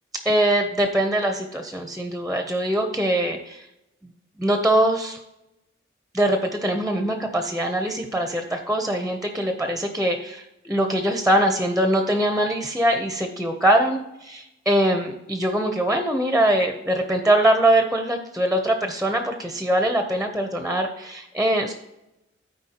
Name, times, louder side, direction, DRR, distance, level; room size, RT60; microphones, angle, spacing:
voice 1, 0.2-3.7 4.0-4.1 4.4-5.2 6.1-14.0 14.3-21.7, right 1 dB, ahead, 5 dB, 0.6 m, -22 dB
13.0 x 4.7 x 2.8 m, 0.90 s
head